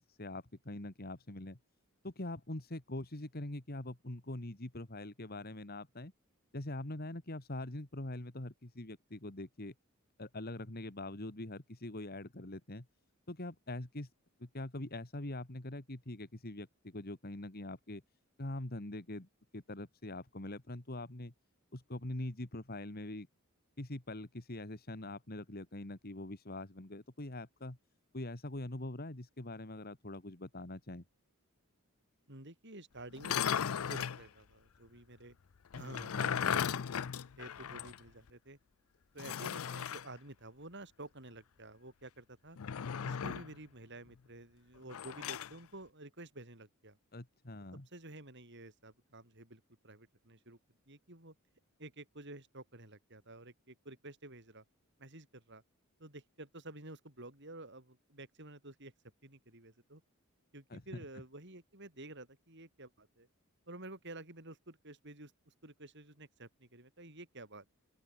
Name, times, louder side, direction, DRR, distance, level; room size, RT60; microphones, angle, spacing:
voice 1, 0.0-1.6 2.0-6.1 6.5-9.7 10.2-12.9 13.3-14.1 14.4-18.0 18.4-21.3 21.7-23.3 23.8-27.8 28.1-31.0 36.1-36.6 47.1-47.9 60.7-61.0, left 1 dB, 45° left, 2.0 m, -43 dB
voice 2, 32.3-35.4 35.7-38.6 39.1-42.6 43.0-47.0 47.9-50.6 50.9-51.3 51.8-54.6 55.0-55.6 56.0-58.9 59.2-60.0 60.5-63.3 63.7-67.7, right 2 dB, 55° right, 6.6 m, -51 dB
sound 1, 33.1-34.2 35.7-38.0 38.3-38.4 39.2-40.1 42.6-43.5 44.9-45.5, left 8 dB, 80° left, 0.5 m, -36 dB
open air
head